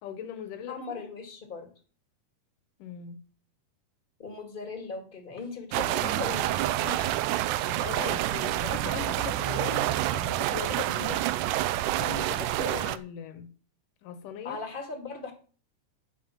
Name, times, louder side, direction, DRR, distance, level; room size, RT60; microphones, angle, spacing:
voice 1, 0.0-1.1 2.8-3.2 5.8-6.0 7.6-11.3 11.7-13.5 14.0-14.6, left 9 dB, 85° left, 2.7 m, -40 dB
voice 2, 0.7-1.7 4.2-7.1 14.4-15.3, left 4 dB, 20° left, 1.4 m, -39 dB
sound 1, 5.7-13.0, right 14 dB, 85° right, 2.1 m, -28 dB
11.0 x 5.3 x 7.3 m
omnidirectional pair, 3.6 m